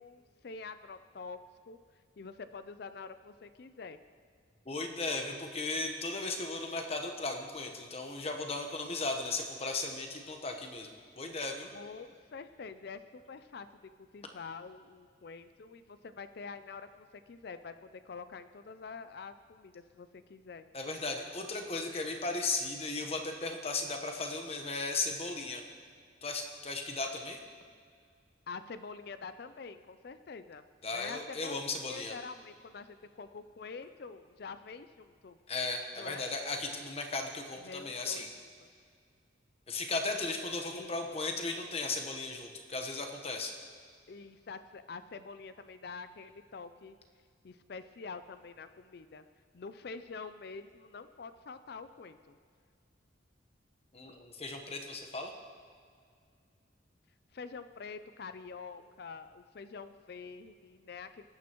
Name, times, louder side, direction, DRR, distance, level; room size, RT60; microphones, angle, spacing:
voice 1, 0.0-1.8 2.2-4.0 11.7-13.7 14.1-20.6 28.5-30.7 30.9-31.6 31.9-35.4 36.0-36.3 37.6-38.5 40.7-41.2 44.1-46.9 47.4-49.2 49.5-52.4 57.3-61.3, left 4 dB, 55° left, 11 dB, 0.4 m, -46 dB
voice 2, 4.6-10.9 11.2-11.7 20.7-25.6 26.2-27.4 30.8-32.2 35.5-38.3 39.7-43.5 53.9-55.3, left 3 dB, 30° left, 4 dB, 1.1 m, -36 dB
20.5 x 9.4 x 3.0 m, 2.2 s
head